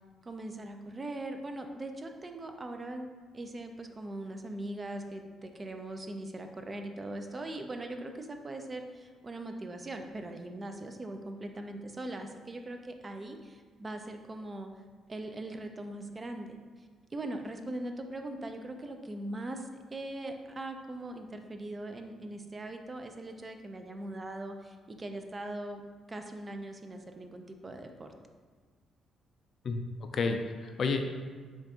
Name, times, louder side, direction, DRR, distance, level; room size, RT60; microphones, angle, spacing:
voice 1, 0.2-3.1 3.3-14.7 15.1-16.6 17.1-28.1, right 1 dB, 30° right, 5 dB, 0.4 m, -40 dB
voice 2, 29.6-31.0, left 4 dB, 55° left, 6 dB, 0.3 m, -31 dB
3.8 x 2.4 x 3.5 m, 1.5 s
cardioid pair, 90°, 0 cm